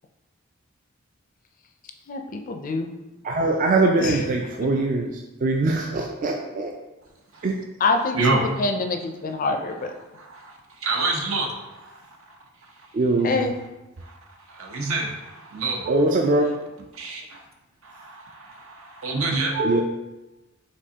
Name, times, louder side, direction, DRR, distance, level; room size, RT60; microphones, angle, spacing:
voice 1, 2.1-2.9 4.0-4.3 4.5-4.7 7.8-9.9 13.2-13.5, left 3 dB, 40° left, 5 dB, 0.4 m, -26 dB
voice 2, 3.2-5.1 5.4-6.7 7.4-7.5 12.9-13.4 15.8-16.5 19.5-19.8, right 2 dB, 40° right, 1 dB, 0.3 m, -22 dB
voice 3, 10.1-10.5 10.8-12.0 14.0-14.1 14.5-15.9 16.9-17.4 17.8-19.6, right 3 dB, 75° right, 1 dB, 0.8 m, -27 dB
5.3 x 3.4 x 2.8 m, 1.0 s
head